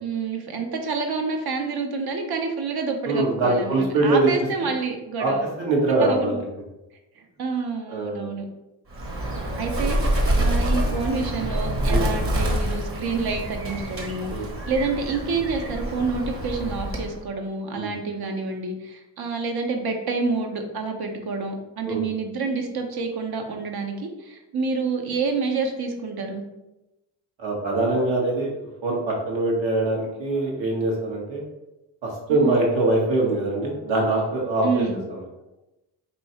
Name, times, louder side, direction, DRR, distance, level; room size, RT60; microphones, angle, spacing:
voice 1, 0.0-5.4 6.0-6.3 7.2-8.4 9.6-26.4 32.3-32.6 34.6-35.0, right 4 dB, 50° right, 3 dB, 0.9 m, -28 dB
voice 2, 3.0-4.3 4.6-4.7 5.2-5.3 5.6-6.4 7.9-8.3 11.9-12.1 14.3-14.7 17.7-17.9 21.9-22.0 27.4-28.5 28.8-31.4 32.0-35.2, right 2 dB, 65° right, -2 dB, 1.5 m, -23 dB
Bird, 8.9-17.2, right 1 dB, 25° right, 1.0 m, -26 dB
3.0 x 2.7 x 4.3 m, 0.98 s
supercardioid pair, 65°, 48 cm